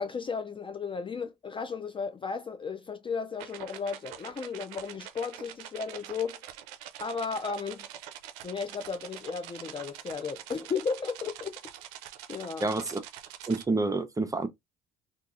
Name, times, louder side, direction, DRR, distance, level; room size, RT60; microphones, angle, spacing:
voice 1, 0.0-6.4 7.0-7.9 8.4-11.5 12.3-12.7, left 5 dB, 25° left, 0.4 m, -34 dB
sound 1, 3.4-13.7, right 11 dB, 90° right, 0.4 m, -45 dB
voice 2, 12.6-13.0 13.4-14.5, right 3 dB, 15° right, 0.6 m, -28 dB
2.7 x 2.3 x 2.4 m
supercardioid pair, 75°, 20 cm